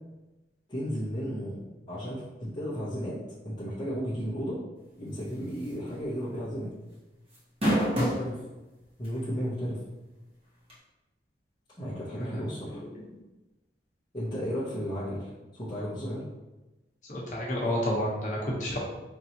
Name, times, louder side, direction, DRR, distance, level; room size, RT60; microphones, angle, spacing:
voice 1, 0.7-1.6 1.9-3.2 3.4-4.6 5.0-6.7 8.0-8.4 9.0-9.8 11.8-12.8 14.1-16.3, equal, 25° left, -10 dB, 0.7 m, -34 dB
sound 1, 5.6-5.9 6.2-6.3 7.3-8.3 9.0-9.1 10.7-10.8, equal, 30° right, 1.1 m, -25 dB
voice 2, 17.1-18.8, equal, 45° left, -5 dB, 1.0 m, -30 dB
4.5 x 2.7 x 2.9 m, 1.1 s
head